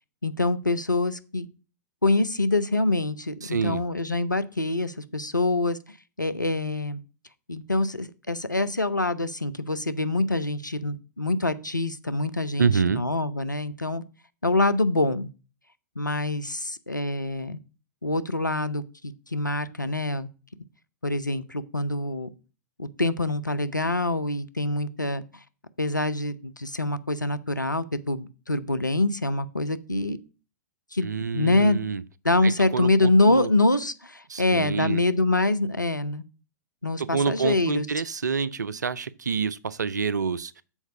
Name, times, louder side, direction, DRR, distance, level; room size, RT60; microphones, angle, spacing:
voice 1, 0.2-1.5 2.0-7.0 7.5-14.0 14.4-15.3 16.0-17.6 18.0-20.3 21.0-22.3 22.8-25.2 25.8-30.2 30.9-31.1 31.3-31.8 32.2-36.2 36.8-37.9, left 2 dB, 90° left, 0.6 m, -25 dB
voice 2, 3.4-3.8 12.6-13.0 31.0-32.0 32.4-32.9 33.3-33.5 34.3-35.0 37.0-40.5, right 5 dB, 70° right, 0.5 m, -27 dB
7.2 x 4.5 x 6.6 m
figure-of-eight pair, 105°, 10 cm